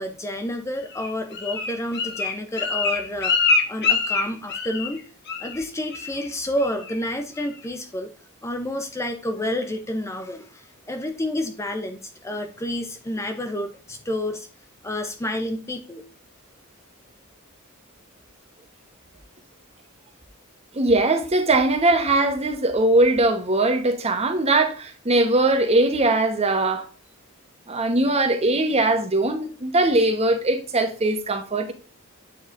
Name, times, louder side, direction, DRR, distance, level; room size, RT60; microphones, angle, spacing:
voice 1, 0.0-3.4 3.7-5.0 5.4-8.1 8.4-14.5 14.8-16.0, left 1 dB, 15° left, 0.5 m, -29 dB
Bird, 0.9-5.0 5.3-5.6 5.9-6.3 6.6-7.0 7.4-7.5, left 4 dB, 50° left, 1.1 m, -25 dB
voice 2, 20.7-26.9 27.7-31.7, right 2 dB, 30° right, 1.0 m, -20 dB
8.4 x 4.7 x 2.5 m
head